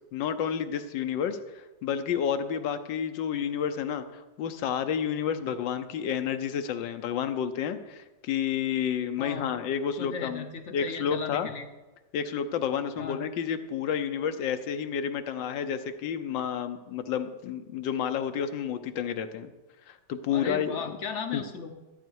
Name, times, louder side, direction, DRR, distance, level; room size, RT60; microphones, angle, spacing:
voice 1, 0.1-10.5 10.7-11.5 12.1-19.5 19.9-20.8 21.3-21.4, left 8 dB, 80° left, 9 dB, 1.4 m, -30 dB
voice 2, 9.2-9.5 10.0-11.7 13.0-13.2 20.3-21.7, left 6 dB, 55° left, 7 dB, 0.8 m, -36 dB
14.0 x 8.9 x 4.6 m, 1.1 s
omnidirectional pair, 2.0 m